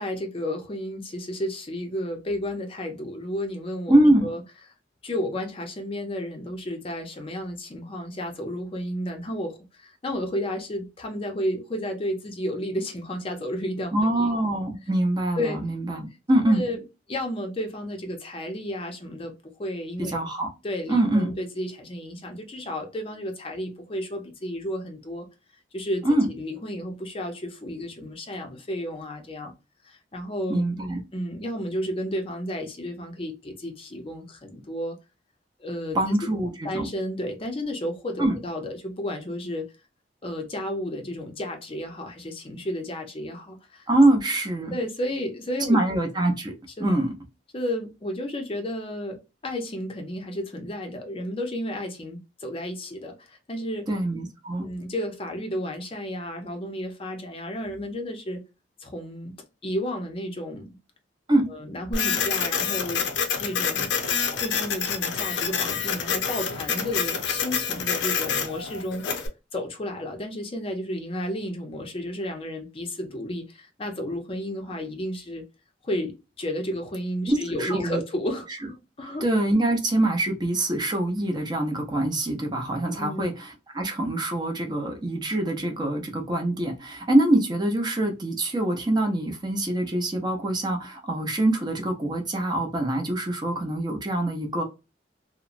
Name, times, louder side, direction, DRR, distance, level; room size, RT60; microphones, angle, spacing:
voice 1, 0.0-4.4 5.0-13.9 14.2-14.3 15.4-15.6 16.5-16.8 17.1-20.2 20.6-25.3 25.7-29.5 29.8-30.6 31.1-35.0 35.6-36.3 36.6-39.7 40.2-43.9 44.7-45.8 46.8-46.9 47.5-53.9 54.6-58.4 58.8-59.3 59.6-60.8 61.5-63.1 63.4-63.9 64.3-69.0 69.5-75.4 75.8-79.3 83.0-83.2, equal, 30° left, 0.5 m, -32 dB
voice 2, 3.9-4.3 13.9-16.7 20.0-20.5 20.9-21.3 26.0-26.3 30.5-31.0 35.9-36.9 38.2-38.4 43.9-44.8 45.7-46.5 46.8-47.1 53.9-54.7 61.3-61.5 77.3-78.0 79.2-94.6, right 1 dB, 25° right, 0.5 m, -24 dB
Printer, 61.9-69.3, left 6 dB, 85° left, 0.6 m, -27 dB
2.9 x 2.0 x 2.4 m
head